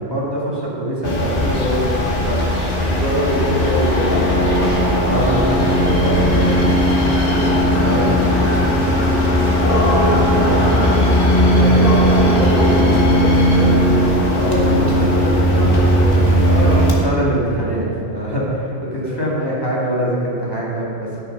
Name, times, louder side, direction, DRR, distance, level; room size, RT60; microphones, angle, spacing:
voice 1, 0.0-1.8 5.0-9.2 9.7-12.0 12.7-13.0 14.3-21.2, right 1 dB, 20° left, -7 dB, 2.3 m, -24 dB
sound 1, 1.0-16.9, equal, 50° left, 1.6 m, -16 dB
voice 2, 1.4-2.5 2.8-4.3 12.4-13.8 16.4-16.9 18.8-19.1, equal, 40° right, -6 dB, 1.5 m, -25 dB
13.0 x 6.5 x 5.4 m, 2.6 s
omnidirectional pair, 1.2 m